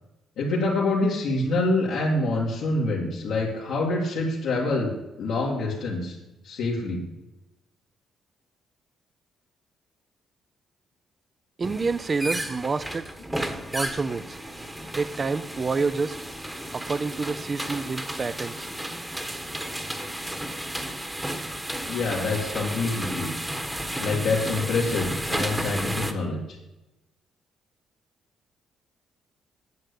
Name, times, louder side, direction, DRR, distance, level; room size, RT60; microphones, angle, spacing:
voice 1, 0.4-4.9 5.2-6.1 6.4-7.0 21.9-23.3 24.0-26.4, left 2 dB, 80° left, -6 dB, 2.2 m, -26 dB
sound 1, 11.6-26.1, right 1 dB, 10° right, 1.2 m, -33 dB
voice 2, 11.6-13.1 13.7-14.4 14.9-16.2 16.7-18.7, right 4 dB, 35° right, 14 dB, 0.5 m, -28 dB
9.4 x 6.8 x 8.5 m, 0.99 s
cardioid pair, 90°, 0 cm